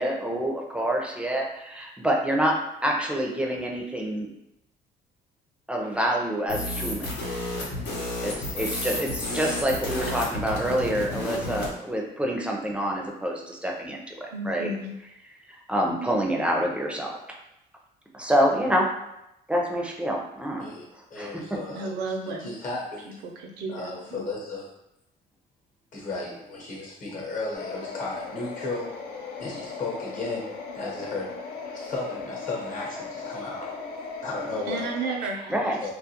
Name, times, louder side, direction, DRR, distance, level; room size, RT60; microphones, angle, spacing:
voice 1, 0.0-4.3 5.7-7.1 8.2-14.7 15.5-17.2 18.1-18.9 19.5-20.6 21.2-21.4 35.5-35.8, equal, 5° right, 0 dB, 0.4 m, -27 dB
sound 1, 6.5-11.7, left 1 dB, 85° left, 0.9 m, -31 dB
voice 2, 14.3-15.0 21.7-22.6 23.2-24.2 34.7-35.9, right 3 dB, 85° right, 2 dB, 0.5 m, -33 dB
voice 3, 20.6-21.9 22.2-23.2 23.7-24.6 25.9-28.9 29.4-30.5 30.7-31.3 31.6-33.7 34.2-34.9 35.8-35.9, left 3 dB, 50° left, -2 dB, 0.9 m, -34 dB
sound 2, 27.5-35.2, left 4 dB, 70° left, 0.5 m, -38 dB
2.4 x 2.3 x 2.8 m, 0.86 s
cardioid pair, 110°, 17 cm